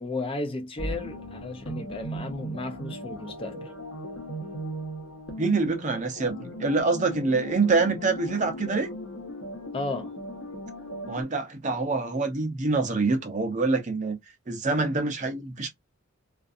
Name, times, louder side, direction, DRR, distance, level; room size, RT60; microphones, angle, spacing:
voice 1, 0.0-3.7 9.7-10.1, left 2 dB, 25° left, 0.5 m, -34 dB
sound 1, 0.8-11.2, equal, 65° left, 1.0 m, -37 dB
voice 2, 5.4-8.9 11.1-14.2 14.5-15.7, right 3 dB, 35° right, 0.6 m, -26 dB
2.5 x 2.5 x 2.4 m
head